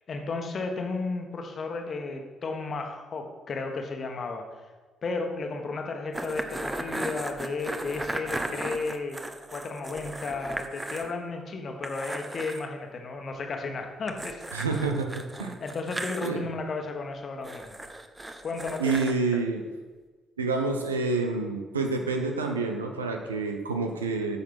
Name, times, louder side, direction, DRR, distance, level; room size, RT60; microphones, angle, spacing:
voice 1, 0.1-4.7 5.0-9.2 9.5-14.5 15.6-17.7 18.4-19.0 19.3-19.4, left 3 dB, 45° left, 4 dB, 1.4 m, -33 dB
sound 1, 6.1-11.1 11.4-11.5 11.8-12.6 14.1-16.3 17.4-19.2, right 1 dB, 15° right, 0.9 m, -36 dB
voice 2, 14.5-15.5 16.2-16.5 18.8-19.6 20.4-24.4, right 4 dB, 80° right, 4 dB, 0.7 m, -28 dB
9.7 x 6.5 x 5.8 m, 1.3 s
figure-of-eight pair, 45°, 0 cm